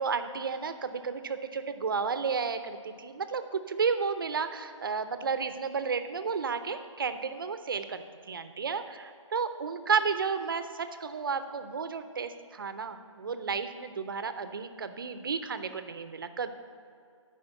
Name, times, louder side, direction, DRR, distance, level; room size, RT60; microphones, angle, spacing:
voice 1, 0.0-16.5, right 5 dB, 45° right, 10 dB, 0.6 m, -32 dB
10.5 x 5.0 x 7.9 m, 2.4 s
hypercardioid pair, 175°, 17 cm